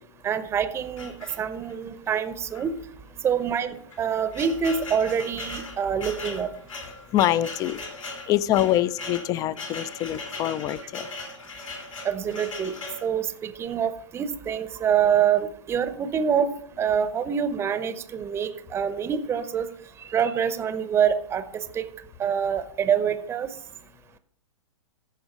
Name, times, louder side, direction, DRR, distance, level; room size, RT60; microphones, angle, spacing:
voice 1, 0.2-2.7 3.2-6.5 12.0-12.7 13.0-16.5 16.8-19.7 20.1-21.8 22.2-23.5, right 8 dB, 15° right, 12 dB, 0.7 m, -26 dB
sound 1, 1.0-1.8 2.5-2.7 3.0-3.1 3.8-13.1, left 3 dB, 80° left, 3.2 m, -38 dB
voice 2, 7.1-11.1, left 13 dB, 20° left, 20 dB, 0.4 m, -25 dB
14.0 x 5.3 x 5.2 m, 0.63 s
figure-of-eight pair, 115°, 16 cm